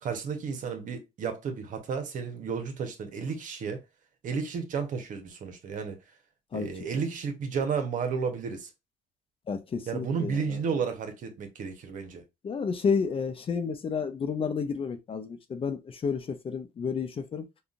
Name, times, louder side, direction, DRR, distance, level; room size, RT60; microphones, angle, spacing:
voice 1, 0.0-3.8 4.2-6.0 6.5-8.7 9.9-12.2, right 6 dB, 55° right, 0.8 m, -32 dB
voice 2, 9.5-10.6 12.4-17.5, left 5 dB, 35° left, 0.5 m, -31 dB
3.7 x 2.3 x 2.4 m
supercardioid pair, 75°, 15 cm